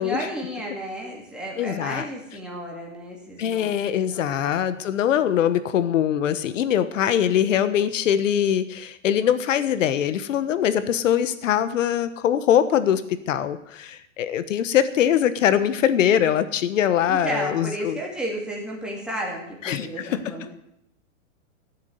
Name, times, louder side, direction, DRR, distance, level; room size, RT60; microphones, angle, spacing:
voice 1, 0.0-3.7 4.0-4.4 17.1-20.5, right 1 dB, ahead, -3 dB, 2.4 m, -33 dB
voice 2, 1.6-2.1 3.4-18.0 19.6-20.5, left 9 dB, 70° left, 13 dB, 1.3 m, -22 dB
15.5 x 7.5 x 7.9 m, 0.77 s
supercardioid pair, 170°, 39 cm